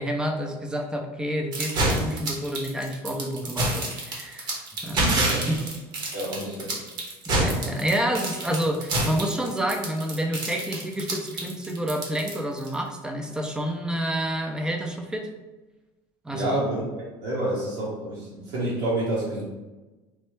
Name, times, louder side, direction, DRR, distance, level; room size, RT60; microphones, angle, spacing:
voice 1, 0.0-5.1 5.5-5.6 7.3-15.3 16.2-16.6, right 1 dB, 5° right, 3 dB, 0.4 m, -29 dB
sound 1, 1.5-12.7, right 1 dB, 40° right, 0.8 m, -27 dB
voice 2, 5.1-5.5 6.1-6.8 16.3-16.8 17.2-19.4, right 1 dB, 80° right, -8 dB, 1.1 m, -28 dB
3.2 x 2.1 x 3.0 m, 1.1 s
cardioid pair, 130°, 11 cm